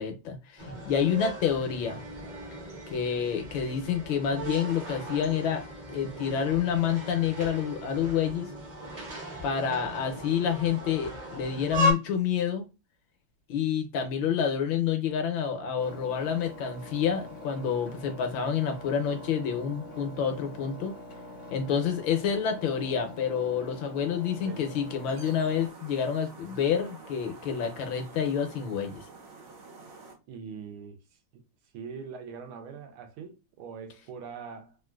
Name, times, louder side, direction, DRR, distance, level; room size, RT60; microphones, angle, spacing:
voice 1, 0.0-2.0 2.9-5.6 5.9-8.5 9.4-12.6 13.5-20.9 21.5-29.0, left 8 dB, 70° left, 1.3 m, -28 dB
sound 1, 0.6-11.9, equal, 35° right, 0.7 m, -36 dB
Engine, 15.8-25.7, left 1 dB, 55° left, 0.8 m, -45 dB
sound 2, 23.9-30.1, right 3 dB, 60° right, 1.5 m, -49 dB
voice 2, 30.3-31.0 31.3-31.4 31.7-34.8, right 6 dB, 80° right, 1.5 m, -42 dB
3.7 x 2.4 x 2.3 m
omnidirectional pair, 2.4 m